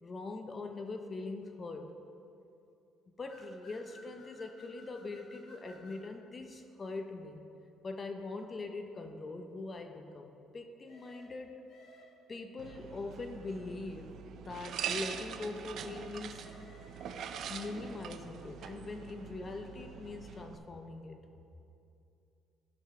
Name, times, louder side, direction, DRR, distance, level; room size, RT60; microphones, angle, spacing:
voice 1, 0.0-2.0 3.2-7.5 7.8-11.6 12.3-16.5 17.5-21.2, left 3 dB, 30° left, 6 dB, 0.8 m, -42 dB
sound 1, 3.3-6.1 10.8-12.4 16.3-18.2, left 1 dB, 65° left, 2.1 m, -58 dB
sound 2, 12.6-20.6, right 8 dB, 65° right, 0.5 m, -43 dB
15.0 x 5.9 x 3.3 m, 2.7 s
cardioid pair, 100°, 0 cm